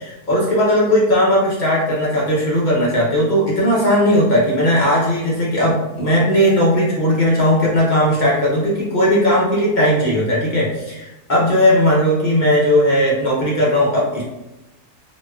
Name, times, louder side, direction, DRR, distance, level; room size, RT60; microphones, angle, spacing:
voice 1, 0.0-14.2, equal, 70° left, -6 dB, 0.4 m, -17 dB
4.1 x 2.2 x 2.2 m, 0.98 s
omnidirectional pair, 1.7 m